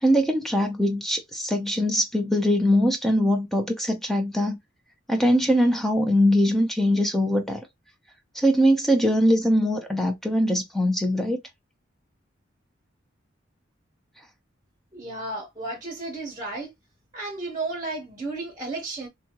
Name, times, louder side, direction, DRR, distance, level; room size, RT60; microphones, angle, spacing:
voice 1, 0.0-4.6 5.1-7.6 8.3-11.4, equal, ahead, 0.5 m, -22 dB
voice 2, 14.9-16.7 17.1-19.1, right 2 dB, 20° right, 0.9 m, -33 dB
2.7 x 2.3 x 2.8 m
head